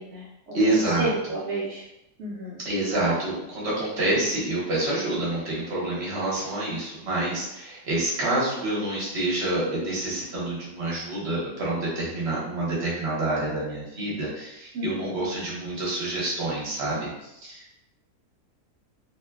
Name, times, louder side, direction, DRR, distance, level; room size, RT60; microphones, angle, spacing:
voice 1, 0.0-1.8 2.2-2.6 3.0-3.2 14.7-15.2, right 1 dB, 70° right, -6 dB, 0.7 m, -32 dB
voice 2, 0.5-1.1 2.6-17.8, right 2 dB, 50° right, -6 dB, 1.0 m, -27 dB
2.9 x 2.1 x 2.3 m, 0.87 s
omnidirectional pair, 1.7 m